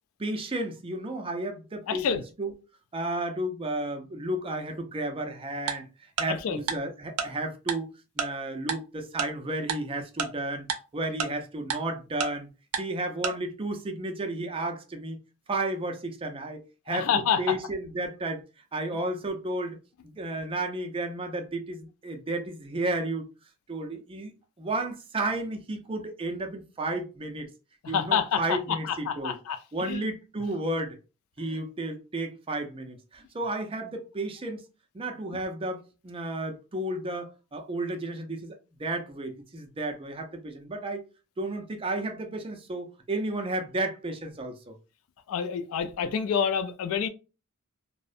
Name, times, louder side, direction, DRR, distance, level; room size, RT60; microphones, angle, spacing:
voice 1, 0.2-2.5 2.9-5.9 6.2-7.9 8.2-10.7 10.9-12.5 12.8-15.2 15.5-18.4 18.7-19.8 20.0-23.2 23.7-24.3 24.6-27.5 27.9-29.4 29.7-31.0 31.4-34.6 34.9-41.0 41.4-44.7, right 2 dB, 25° right, 0.4 m, -32 dB
voice 2, 1.9-2.2 6.3-6.6 16.9-17.5 27.8-30.0 31.5-31.6 45.3-47.1, left 7 dB, 65° left, 0.3 m, -28 dB
Tick-tock, 5.7-5.8 6.2-6.3 6.7-6.8 7.2-7.3 7.7-7.8 8.2-8.3 8.7-8.8 9.2-9.3 9.7-9.8 10.2-10.3 10.7-10.8 11.2-11.3 11.7-11.8 12.2-12.3 12.7-12.8 13.2-13.3, right 6 dB, 85° right, 0.5 m, -28 dB
2.5 x 2.0 x 2.4 m
head